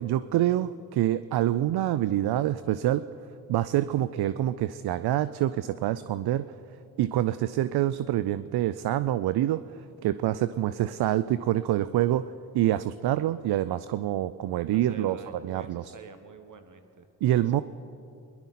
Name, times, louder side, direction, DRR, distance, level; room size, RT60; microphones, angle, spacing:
voice 1, 0.0-3.0 3.5-6.5 7.0-9.6 10.0-12.2 12.5-15.2 15.4-15.9 17.2-17.6, right 13 dB, 65° right, 14 dB, 0.5 m, -26 dB
voice 2, 14.7-17.1 17.4-17.6, right 4 dB, 45° right, 8 dB, 1.4 m, -47 dB
20.0 x 11.5 x 4.2 m, 2.6 s
supercardioid pair, 45°, 42 cm